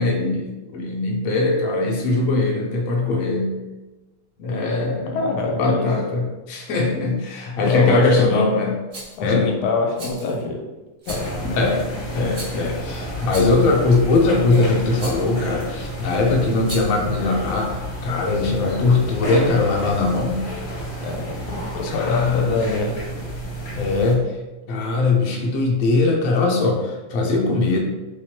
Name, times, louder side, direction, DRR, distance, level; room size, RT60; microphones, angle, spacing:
voice 1, 0.0-3.6 4.4-8.8 9.2-9.5 11.4-17.8 18.0-20.4 21.9-22.6 23.7-24.3 24.7-27.8, left 3 dB, 70° left, 0 dB, 0.8 m, -20 dB
voice 2, 5.1-5.9 7.6-8.4 9.2-10.6 11.1-11.4 21.0-23.0, left 3 dB, 90° left, 1 dB, 1.4 m, -25 dB
Rattle, 8.9-9.2 10.0-10.4 11.0-11.4 12.3-12.8 13.3-13.7 15.0-15.3 16.6-17.0, right 2 dB, 70° right, 0.5 m, -36 dB
sound 1, 11.1-24.1, right 1 dB, 45° left, 1.0 m, -31 dB
3.4 x 3.0 x 2.8 m, 1.1 s
omnidirectional pair, 2.2 m